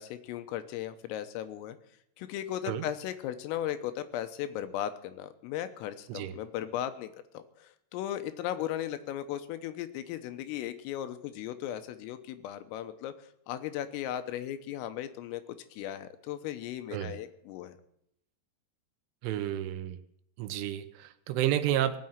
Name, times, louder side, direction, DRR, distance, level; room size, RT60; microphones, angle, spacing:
voice 1, 0.0-1.8 2.2-13.1 13.5-17.8, left 11 dB, 90° left, 10 dB, 3.7 m, -37 dB
voice 2, 19.2-20.0 20.4-22.0, right 12 dB, 80° right, 10 dB, 3.3 m, -31 dB
19.0 x 7.7 x 9.2 m, 0.77 s
omnidirectional pair, 5.9 m